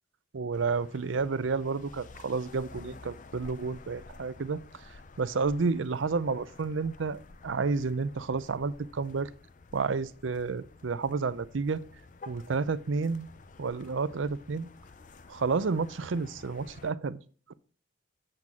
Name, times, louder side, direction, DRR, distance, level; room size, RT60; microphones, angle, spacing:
voice 1, 0.3-4.6 5.2-9.3 9.7-11.8 12.3-13.3 13.6-14.7 15.3-17.2, right 4 dB, 80° right, 0.5 m, -30 dB
sound 1, 0.5-16.9, left 3 dB, 40° left, 0.5 m, -51 dB
7.7 x 7.5 x 3.6 m
head